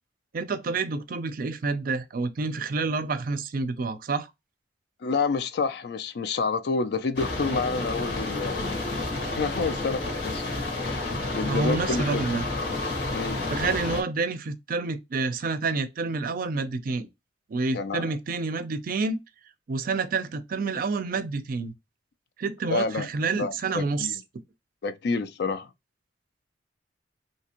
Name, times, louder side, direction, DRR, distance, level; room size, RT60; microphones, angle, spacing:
voice 1, 0.3-4.3 11.5-12.4 13.5-17.1 17.5-19.2 19.7-21.7 22.4-24.1, right 4 dB, 55° right, 0.4 m, -28 dB
voice 2, 5.0-8.8 9.4-10.4 10.8-12.2 13.1-13.4 17.7-18.1 22.7-24.2 24.8-25.7, left 4 dB, 65° left, 0.4 m, -29 dB
sound 1, 7.2-14.0, left 2 dB, 85° left, 1.3 m, -30 dB
3.4 x 2.8 x 2.9 m
head